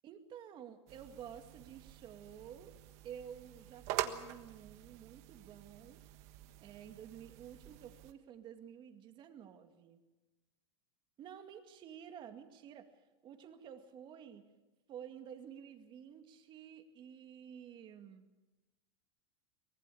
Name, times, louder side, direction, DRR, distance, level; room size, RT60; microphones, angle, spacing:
voice 1, 0.0-2.8 3.0-6.0 6.6-10.0 11.2-12.9 13.2-14.5 14.9-18.3, right 9 dB, 35° right, 6 dB, 2.2 m, -51 dB
sound 1, 0.9-8.1, right 13 dB, 50° right, 1.4 m, -45 dB
24.0 x 17.5 x 7.1 m, 1.1 s
supercardioid pair, 135°, 14 cm